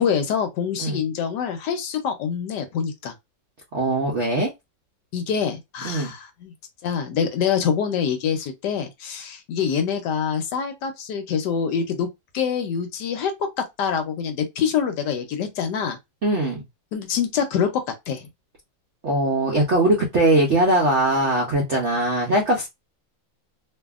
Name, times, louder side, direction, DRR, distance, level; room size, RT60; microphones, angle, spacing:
voice 1, 0.0-3.1 5.1-6.5 6.8-12.1 12.3-13.3 13.8-16.0 16.9-17.7 18.1-18.3, left 7 dB, 75° left, 1.1 m, -25 dB
voice 2, 3.7-4.5 5.8-6.1 16.2-16.6 19.0-22.7, right 1 dB, 65° right, 0.7 m, -21 dB
2.6 x 2.6 x 2.3 m
omnidirectional pair, 2.1 m